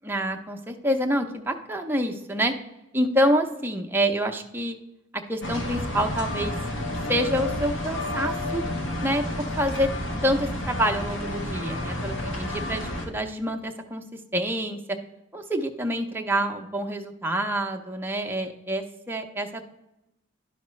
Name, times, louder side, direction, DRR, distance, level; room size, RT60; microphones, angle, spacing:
voice 1, 0.0-2.5 2.9-4.8 5.1-6.5 7.1-8.6 9.0-9.2 9.6-9.9 10.2-14.0 14.3-15.0 15.3-19.6, equal, 10° right, 3 dB, 0.6 m, -27 dB
sound 1, 5.4-13.1, left 1 dB, 90° left, 1.3 m, -30 dB
11.0 x 5.6 x 3.1 m, 0.92 s
head